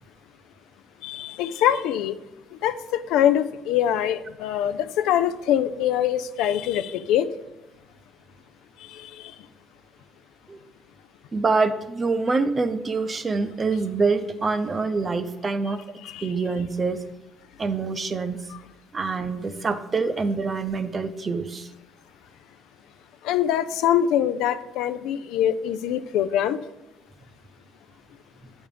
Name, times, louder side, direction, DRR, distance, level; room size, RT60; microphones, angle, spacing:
voice 1, 1.0-2.2 2.6-7.3 8.9-9.3 16.0-16.3 23.2-26.6, left 10 dB, 80° left, 11 dB, 0.4 m, -24 dB
voice 2, 11.3-15.8 16.2-17.0 17.6-18.4 18.9-21.7, right 4 dB, 30° right, 9 dB, 0.7 m, -25 dB
8.6 x 5.3 x 4.9 m, 0.97 s
cardioid pair, 90°, 0 cm